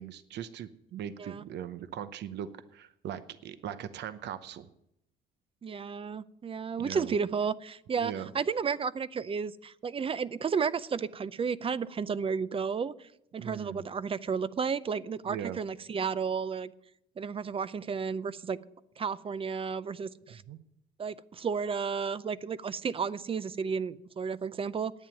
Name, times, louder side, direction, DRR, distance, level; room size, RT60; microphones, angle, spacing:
voice 1, 0.0-4.7 6.8-7.1 8.0-8.3 13.4-13.8 15.2-15.6 20.5-20.6, right 9 dB, 60° right, 12 dB, 0.8 m, -40 dB
voice 2, 5.6-16.7 17.2-18.6 19.0-20.4 21.0-24.9, right 6 dB, 30° right, 17 dB, 0.5 m, -32 dB
10.5 x 8.8 x 9.2 m, 0.80 s
cardioid pair, 110°, 20 cm